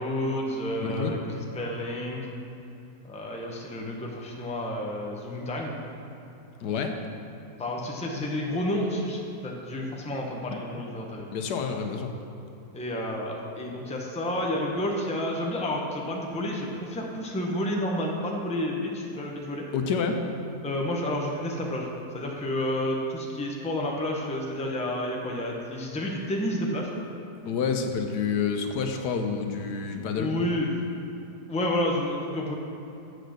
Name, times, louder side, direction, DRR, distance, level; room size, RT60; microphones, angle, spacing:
voice 1, 0.0-2.2 3.0-5.8 7.6-11.3 12.7-19.6 20.6-21.9 22.1-26.9 29.9-30.8 31.5-32.5, left 1 dB, 5° left, -1 dB, 0.7 m, -30 dB
voice 2, 6.6-7.0 10.7-10.8 11.3-12.1 19.7-20.2 27.4-30.3, left 6 dB, 85° left, 4 dB, 1.4 m, -28 dB
7.6 x 6.4 x 6.5 m, 2.9 s
omnidirectional pair, 1.8 m